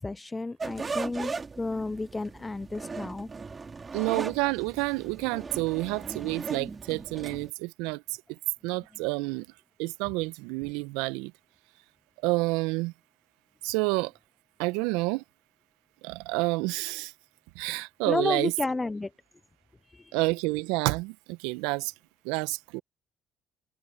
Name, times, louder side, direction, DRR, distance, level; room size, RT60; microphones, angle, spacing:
voice 1, 0.0-3.3 18.1-19.1 19.9-20.1, left 2 dB, 20° left, 0.9 m, -32 dB
sound 1, 0.6-7.5, right 4 dB, 30° right, 3.7 m, -38 dB
voice 2, 3.9-8.0 8.6-9.4 9.8-11.3 12.2-12.9 13.6-14.1 14.6-15.2 16.0-17.1 17.5-18.5 20.1-21.9 22.2-22.8, right 24 dB, 75° right, 1.2 m, -29 dB
hypercardioid pair, 50°, 0 cm